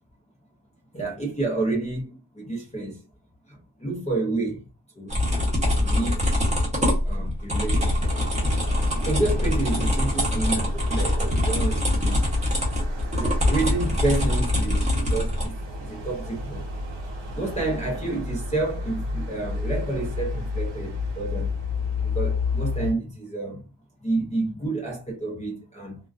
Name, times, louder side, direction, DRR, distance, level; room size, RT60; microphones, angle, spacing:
voice 1, 0.9-3.0 3.5-4.6 5.0-6.3 7.0-8.1 8.9-12.2 13.1-15.6 15.8-16.7 17.1-21.5 22.0-23.6 24.0-26.0, right 2 dB, 15° left, 0.5 m, -29 dB
sound 1, 5.1-15.5, left 1 dB, 15° right, 0.8 m, -23 dB
sound 2, 8.0-22.9, left 3 dB, 85° right, 0.9 m, -32 dB
2.3 x 2.2 x 2.3 m
wide cardioid pair, 160°, 44 cm